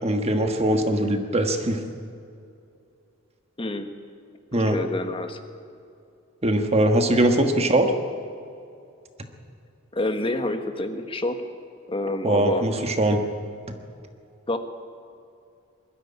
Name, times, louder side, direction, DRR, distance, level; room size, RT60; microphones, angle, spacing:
voice 1, 0.0-1.8 4.5-4.8 6.4-7.9 12.2-13.2, right 1 dB, 30° right, 5 dB, 1.4 m, -21 dB
voice 2, 3.6-3.9 4.5-5.4 9.9-11.4 11.9-12.6 14.5-14.6, left 1 dB, 25° left, 7 dB, 1.3 m, -28 dB
21.0 x 12.5 x 9.8 m, 2.5 s
head